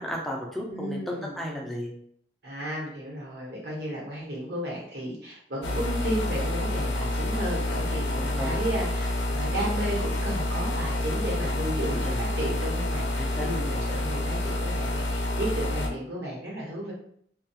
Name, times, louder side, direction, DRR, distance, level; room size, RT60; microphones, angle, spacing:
voice 1, 0.0-1.9 5.7-5.8 8.2-8.6 11.8-12.2 13.2-13.8, equal, ahead, -2 dB, 0.4 m, -35 dB
voice 2, 0.7-1.4 2.4-16.9, right 1 dB, 70° right, -4 dB, 1.1 m, -33 dB
sound 1, 5.6-15.9, left 1 dB, 85° left, 0.4 m, -28 dB
2.3 x 2.2 x 2.8 m, 0.64 s
head